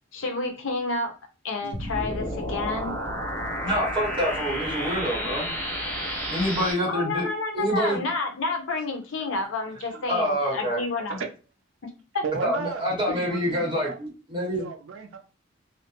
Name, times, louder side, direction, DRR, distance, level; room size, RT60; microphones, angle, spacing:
voice 1, 0.1-1.1 1.4-3.0 6.9-11.2 11.8-12.2, left 3 dB, 80° left, 0.6 m, -30 dB
sound 1, 1.7-6.7, equal, 10° left, 0.8 m, -31 dB
voice 2, 2.2-2.6 9.9-10.0 11.1-11.3 12.2-14.0 14.5-15.2, right 5 dB, 80° right, 0.4 m, -35 dB
voice 3, 3.6-5.5 6.3-7.3 7.5-8.0 10.1-10.8 12.4-14.7, equal, 25° right, 1.0 m, -26 dB
2.4 x 2.1 x 2.9 m
head